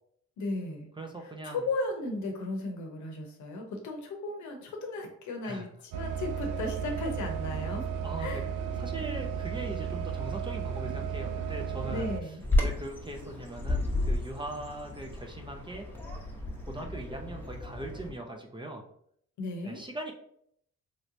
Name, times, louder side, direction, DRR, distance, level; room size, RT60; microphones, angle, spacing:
voice 1, 0.4-0.9 1.4-7.9 8.2-8.5 11.9-12.4 19.4-19.8, left 2 dB, 75° left, 3 dB, 0.8 m, -35 dB
voice 2, 1.0-1.6 5.4-5.7 8.0-8.4 8.8-15.9 16.7-18.8 19.6-20.1, right 1 dB, 15° right, 2 dB, 0.5 m, -40 dB
sound 1, 5.9-12.2, right 7 dB, 80° right, 0.5 m, -34 dB
sound 2, 7.3-8.4 8.8-9.3 9.7-10.1 10.7-11.3 11.5-12.0 12.4-13.0 13.3-13.4, right 3 dB, 55° right, 1.0 m, -50 dB
Bird vocalization bird call bird song, 12.4-18.1, left 1 dB, 5° left, 0.9 m, -32 dB
3.2 x 2.9 x 2.6 m, 0.68 s
cardioid pair, 90°, 30 cm